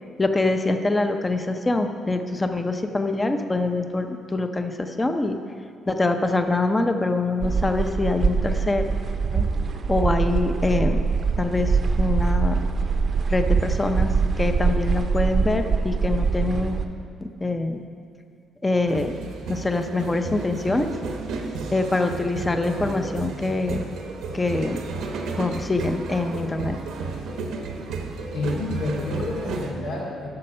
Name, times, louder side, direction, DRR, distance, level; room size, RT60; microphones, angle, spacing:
voice 1, 0.2-5.4 5.9-8.8 9.3-9.4 9.9-11.0 11.4-12.6 13.3-16.8 17.2-17.8 18.6-19.1 19.5-20.9 21.7-23.8 24.3-24.8 25.4-26.8, left 2 dB, 20° left, 6 dB, 0.6 m, -24 dB
sound 1, 7.4-16.8, right 5 dB, 55° right, 0.7 m, -23 dB
sound 2, 18.9-29.7, right 4 dB, 85° right, 1.0 m, -32 dB
voice 2, 28.3-30.3, left 2 dB, 85° left, -3 dB, 2.4 m, -29 dB
9.6 x 6.6 x 5.5 m, 2.3 s
cardioid pair, 90°, 0 cm